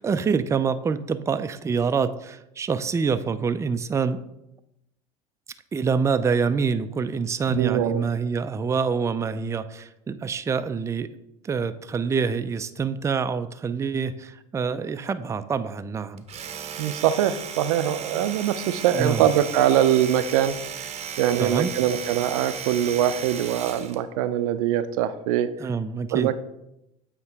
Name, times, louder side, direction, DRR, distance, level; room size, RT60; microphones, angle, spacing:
voice 1, 0.0-4.2 5.7-11.1 11.4-16.2 18.9-19.3 21.3-21.7 25.6-26.3, right 5 dB, 15° right, 10 dB, 0.4 m, -26 dB
voice 2, 7.5-8.0 16.8-20.9 21.2-25.5 26.1-26.4, right 11 dB, 80° right, 12 dB, 0.4 m, -23 dB
Domestic sounds home sounds, 16.2-24.0, right 8 dB, 40° right, 0.7 m, -35 dB
8.1 x 3.0 x 4.6 m, 0.85 s
hypercardioid pair, 85°, 18 cm